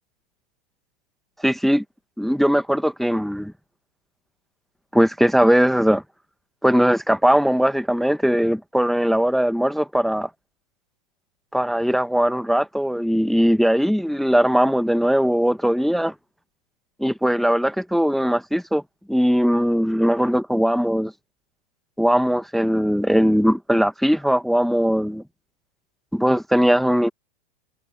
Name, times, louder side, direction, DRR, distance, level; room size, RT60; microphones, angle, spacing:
voice 1, 1.4-1.8 2.2-3.5 4.9-6.0 6.6-10.3 11.5-16.1 17.0-18.8 19.1-21.1 22.0-25.2 26.1-27.1, equal, ahead, 0.7 m, -19 dB
supercardioid pair, 160°, 29 cm